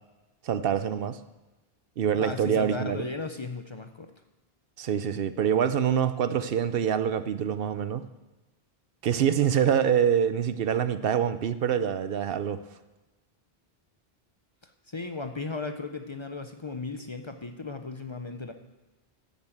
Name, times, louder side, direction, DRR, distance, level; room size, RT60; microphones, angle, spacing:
voice 1, 0.4-1.2 2.0-3.0 4.8-8.0 9.0-12.6, right 8 dB, 70° right, 12 dB, 0.8 m, -25 dB
voice 2, 2.1-4.1 14.6-18.5, left 3 dB, 30° left, 7 dB, 0.7 m, -36 dB
11.5 x 7.3 x 7.8 m, 1.1 s
omnidirectional pair, 1.0 m